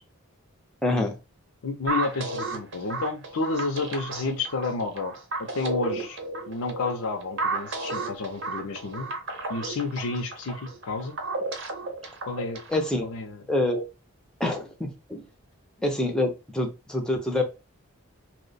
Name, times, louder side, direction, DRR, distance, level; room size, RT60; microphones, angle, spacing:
voice 1, 0.8-1.2 12.7-13.0 13.5-13.8 14.4-15.2 15.8-17.4, left 1 dB, 5° left, 2 dB, 0.4 m, -26 dB
voice 2, 1.6-5.1 5.4-6.2 6.5-9.1 9.5-11.2 12.3-12.6 13.0-13.4, left 3 dB, 80° left, 2 dB, 0.5 m, -30 dB
sound 1, 1.9-12.9, right 3 dB, 55° right, 0.7 m, -33 dB
2.9 x 2.1 x 3.9 m, 0.28 s
head